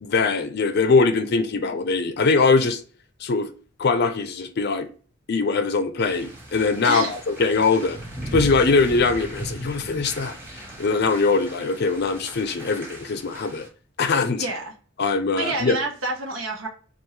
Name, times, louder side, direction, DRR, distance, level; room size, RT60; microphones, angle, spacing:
voice 1, 0.0-2.8 3.2-3.5 3.8-4.9 5.3-8.0 8.3-10.3 10.8-13.7 14.0-14.4 15.0-15.8, left 4 dB, 55° left, 0.5 m, -21 dB
sound 1, 6.0-13.7, right 1 dB, 10° right, 1.0 m, -37 dB
voice 2, 6.8-7.2 14.4-14.7 15.3-16.7, right 2 dB, 85° right, 1.1 m, -29 dB
4.4 x 2.6 x 3.2 m
head